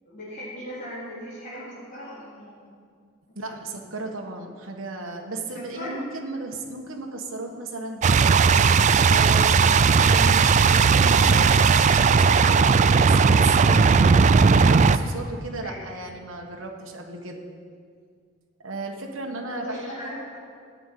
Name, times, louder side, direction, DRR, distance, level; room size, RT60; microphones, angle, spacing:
voice 1, 0.0-2.7 3.5-3.6 5.5-6.0 15.6-15.8 19.5-20.4, equal, 40° left, -9 dB, 3.8 m, -38 dB
voice 2, 3.3-8.8 9.0-17.4 18.6-20.2, right 2 dB, 70° right, 1 dB, 1.4 m, -35 dB
sound 1, 8.0-15.0, right 5 dB, 35° right, 0.3 m, -17 dB
12.0 x 7.2 x 9.1 m, 2.1 s
head